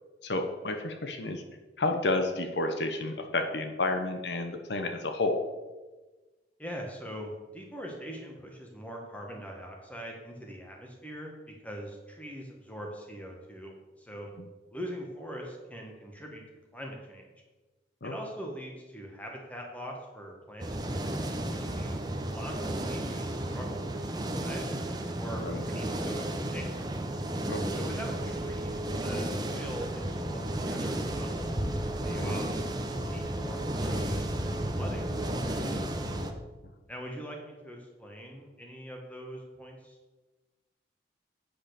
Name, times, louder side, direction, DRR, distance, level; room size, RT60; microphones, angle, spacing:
voice 1, 0.2-1.4 1.8-5.4 18.0-18.1 25.4-25.6 27.5-27.6 32.2-32.3, left 2 dB, 70° left, 5 dB, 0.9 m, -30 dB
voice 2, 6.6-14.3 14.7-16.4 16.7-17.3 18.0-24.7 25.2-26.7 27.7-31.4 32.0-36.0 36.9-40.0, equal, 10° left, 0 dB, 1.7 m, -43 dB
sound 1, 20.6-36.3, right 1 dB, 20° right, 0.8 m, -33 dB
8.5 x 5.5 x 6.7 m, 1.2 s
head